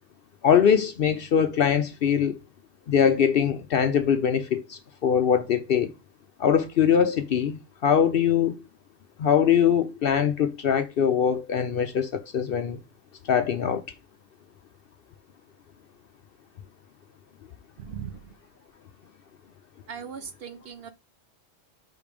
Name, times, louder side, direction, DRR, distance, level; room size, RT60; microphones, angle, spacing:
voice 1, 0.4-2.4 2.9-5.9 6.4-8.5 9.2-12.8 13.3-13.8, left 8 dB, 60° left, 0.6 m, -22 dB
voice 2, 17.8-18.2 19.9-20.9, right 7 dB, 60° right, 0.7 m, -38 dB
5.0 x 4.0 x 5.0 m
omnidirectional pair, 1.3 m